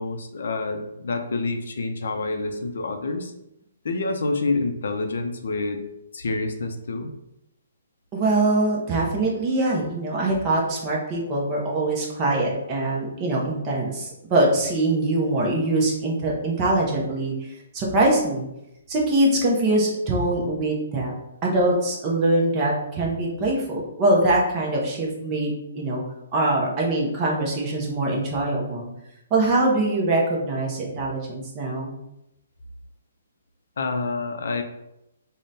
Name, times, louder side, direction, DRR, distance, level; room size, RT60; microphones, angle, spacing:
voice 1, 0.0-3.3 3.8-5.8 6.1-7.1 33.8-34.6, left 3 dB, 65° left, 5 dB, 0.5 m, -27 dB
voice 2, 8.1-18.5 18.9-21.1 21.4-26.0 26.3-28.9 29.3-31.9, right 2 dB, 15° right, -2 dB, 0.5 m, -23 dB
3.6 x 2.1 x 3.9 m, 0.87 s
hypercardioid pair, 180°, 0 cm